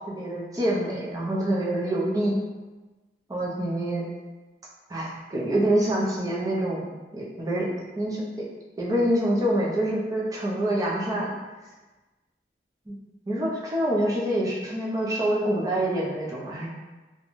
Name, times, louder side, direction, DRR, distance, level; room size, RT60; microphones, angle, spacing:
voice 1, 0.1-2.4 3.3-4.1 4.9-7.7 8.0-8.2 8.8-11.4 12.9-13.0 13.3-16.7, right 1 dB, 20° right, -5 dB, 0.5 m, -26 dB
2.5 x 2.1 x 3.0 m, 1.2 s
head